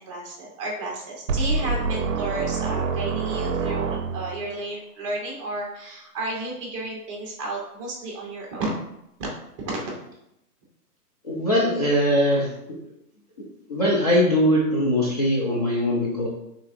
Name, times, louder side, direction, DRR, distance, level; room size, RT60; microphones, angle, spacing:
voice 1, 0.0-8.7 9.6-10.0, right 2 dB, 20° right, -1 dB, 0.8 m, -32 dB
sound 1, 1.3-4.5, right 4 dB, 55° right, 0.7 m, -26 dB
voice 2, 11.2-12.8 13.7-16.3, equal, 25° left, -5 dB, 0.5 m, -21 dB
5.4 x 3.6 x 2.5 m, 0.80 s
hypercardioid pair, 150°, 47 cm